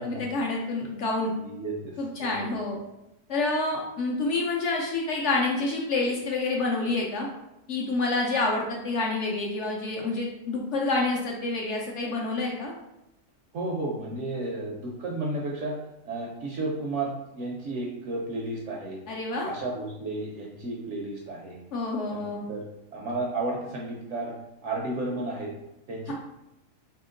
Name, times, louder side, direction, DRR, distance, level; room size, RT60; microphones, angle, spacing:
voice 1, 0.0-1.3 2.0-2.8 3.3-7.3 7.7-12.7 19.1-19.5 21.7-22.5 26.1-26.2, left 3 dB, 65° left, -1 dB, 0.7 m, -28 dB
voice 2, 1.4-2.5 13.5-15.8 16.0-19.0 19.4-21.6 22.1-22.7 22.9-24.3 24.6-25.5 25.9-26.1, right 2 dB, 65° right, -2 dB, 0.7 m, -33 dB
2.8 x 2.8 x 3.7 m, 0.90 s
omnidirectional pair, 1.6 m